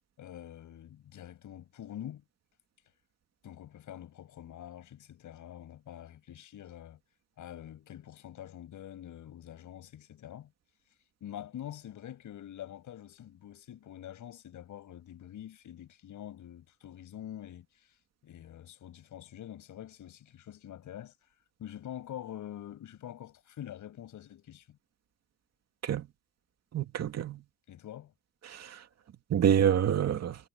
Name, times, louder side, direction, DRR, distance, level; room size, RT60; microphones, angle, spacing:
voice 1, 0.2-2.2 3.4-7.0 7.4-10.5 11.2-17.9 18.2-21.1 21.6-24.8 27.7-28.1, left 11 dB, 75° left, 6.5 m, -46 dB
voice 2, 26.7-27.4 28.5-28.7 29.3-30.4, right 9 dB, 55° right, 2.4 m, -27 dB
cardioid pair, 155°, 31 cm